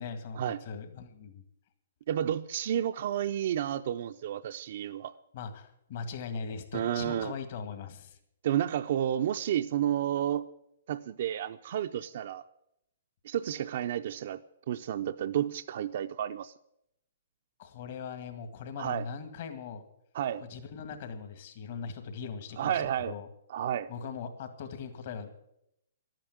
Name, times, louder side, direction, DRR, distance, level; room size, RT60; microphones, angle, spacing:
voice 1, 0.0-1.4 5.3-8.2 17.6-19.8 20.5-23.3 23.9-25.5, left 5 dB, 50° left, 7 dB, 1.9 m, -40 dB
voice 2, 2.1-5.1 6.7-7.3 8.4-10.5 10.9-12.4 13.2-14.4 14.7-16.5 18.8-19.0 20.1-20.4 22.6-23.2 23.5-23.9, right 10 dB, 55° right, 9 dB, 0.5 m, -31 dB
12.0 x 9.0 x 9.2 m, 0.79 s
hypercardioid pair, 150°, 0 cm